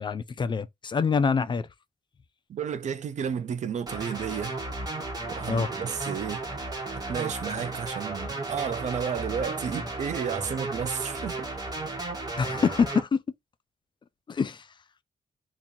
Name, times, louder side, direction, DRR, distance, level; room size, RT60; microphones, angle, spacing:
voice 1, 0.0-1.7 5.5-5.7 12.4-13.2 14.3-14.6, left 5 dB, 35° left, 0.4 m, -25 dB
voice 2, 2.5-4.6 5.3-6.4 6.9-11.5, right 7 dB, 65° right, 0.5 m, -32 dB
sound 1, 3.9-13.0, right 2 dB, 30° right, 1.4 m, -34 dB
2.9 x 2.6 x 3.7 m
wide cardioid pair, 115°, 13 cm